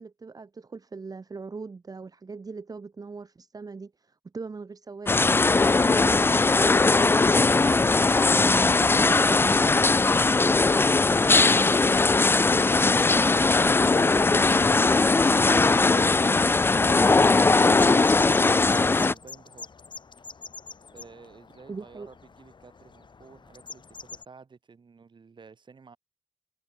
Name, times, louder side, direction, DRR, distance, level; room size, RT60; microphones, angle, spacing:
voice 1, 0.0-7.3 7.5-10.2 15.7-16.1 21.7-22.1, right 4 dB, 50° right, 0.9 m, -40 dB
sound 1, 5.1-19.1, left 3 dB, 25° left, 0.4 m, -20 dB
sound 2, 8.5-24.2, left 5 dB, 65° left, 6.3 m, -47 dB
voice 2, 11.0-11.6 16.8-19.7 20.9-26.0, right 5 dB, 65° right, 5.7 m, -50 dB
wide cardioid pair, 70°, 8 cm